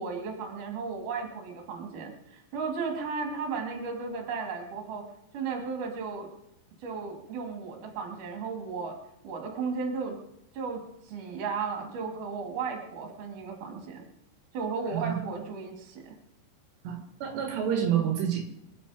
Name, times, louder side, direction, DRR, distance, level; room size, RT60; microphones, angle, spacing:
voice 1, 0.0-5.0 5.3-6.3 6.8-9.0 9.2-10.2 10.5-14.1 14.5-16.2, right 5 dB, 50° right, 2 dB, 3.8 m, -35 dB
voice 2, 14.9-15.3 16.9-18.4, right 9 dB, 75° right, 3 dB, 3.6 m, -28 dB
25.5 x 9.8 x 5.1 m, 0.81 s
omnidirectional pair, 5.0 m